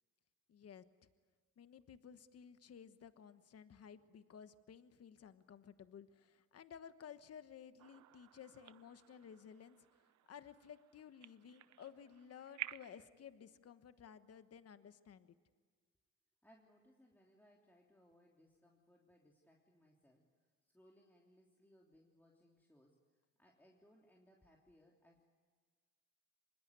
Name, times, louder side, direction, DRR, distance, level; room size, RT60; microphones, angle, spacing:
voice 1, 0.5-0.8 1.6-9.8 10.3-15.3, left 8 dB, 55° left, 11 dB, 1.3 m, -56 dB
sound 1, 7.8-13.1, right 13 dB, 70° right, 0.8 m, -53 dB
voice 2, 16.4-20.2 20.6-25.2, equal, 5° left, -1 dB, 3.3 m, -68 dB
25.5 x 21.0 x 9.6 m, 1.5 s
cardioid pair, 90°, 30 cm